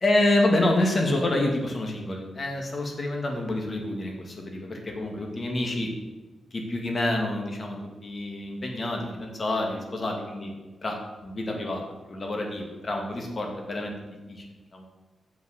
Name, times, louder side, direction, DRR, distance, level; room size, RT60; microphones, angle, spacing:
voice 1, 0.0-5.9 6.5-10.5 10.8-11.8 12.1-14.4 14.7-14.9, left 1 dB, 40° left, 2 dB, 2.0 m, -28 dB
7.4 x 6.3 x 6.4 m, 1.2 s
cardioid pair, 95°, 0 cm